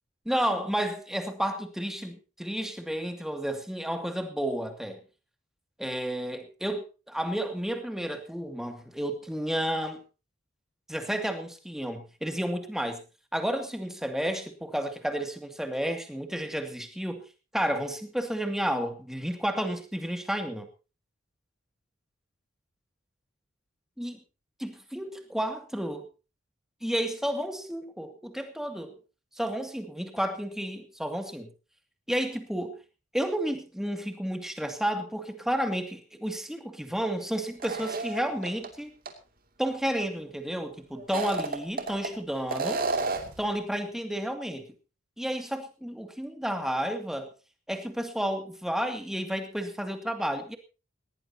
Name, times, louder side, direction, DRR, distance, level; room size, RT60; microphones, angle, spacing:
voice 1, 0.3-5.0 5.8-10.0 10.9-13.0 13.3-17.2 17.5-20.7 24.0-24.2 24.6-26.1 26.8-28.9 29.3-31.5 32.1-32.7 33.1-38.9 39.6-42.8 43.4-44.7 45.2-47.3 47.7-50.6, equal, ahead, 6 dB, 2.3 m, -31 dB
sound 1, 37.6-38.7 39.1-39.2 41.0-42.1 42.5-43.4, right 3 dB, 45° right, 2.6 m, -31 dB
18.5 x 18.0 x 2.9 m, 0.33 s
head